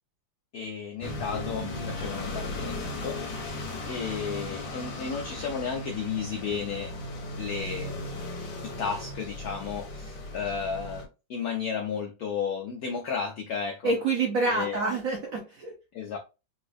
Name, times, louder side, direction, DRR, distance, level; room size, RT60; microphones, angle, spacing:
voice 1, 0.5-2.7 3.0-3.4 3.9-6.9 7.4-8.3 8.6-13.9 14.4-14.8 15.9-16.2, left 6 dB, 80° left, 0.8 m, -33 dB
sound 1, 1.0-11.0, left 2 dB, 55° left, 1.0 m, -36 dB
voice 2, 1.5-1.9 13.8-15.7, right 3 dB, 60° right, 0.9 m, -28 dB
4.1 x 2.4 x 2.5 m
omnidirectional pair, 2.2 m